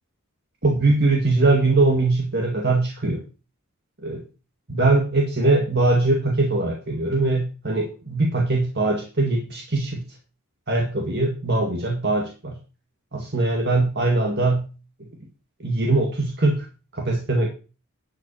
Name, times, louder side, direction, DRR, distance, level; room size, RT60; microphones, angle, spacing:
voice 1, 0.6-3.2 4.0-4.2 4.7-10.0 10.7-12.6 13.1-14.7 15.6-16.6 16.9-17.5, right 2 dB, 50° right, 0 dB, 2.0 m, -21 dB
11.0 x 5.5 x 7.2 m, 0.34 s
head